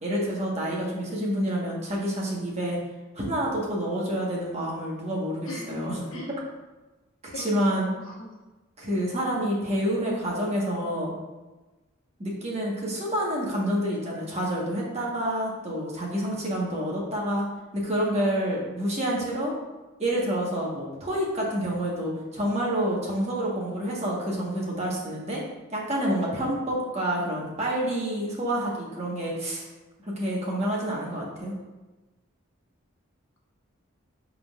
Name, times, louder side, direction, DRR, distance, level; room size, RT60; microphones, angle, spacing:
voice 1, 0.0-2.8 3.1-6.0 7.4-7.9 8.8-11.1 12.2-17.4 17.7-19.5 20.0-25.4 25.7-29.6 30.0-31.5, equal, 30° right, -4 dB, 1.3 m, -28 dB
voice 2, 5.5-6.3 7.3-8.3 8.8-9.0, left 2 dB, 70° left, -2 dB, 1.2 m, -41 dB
10.5 x 3.8 x 2.4 m, 1.1 s
head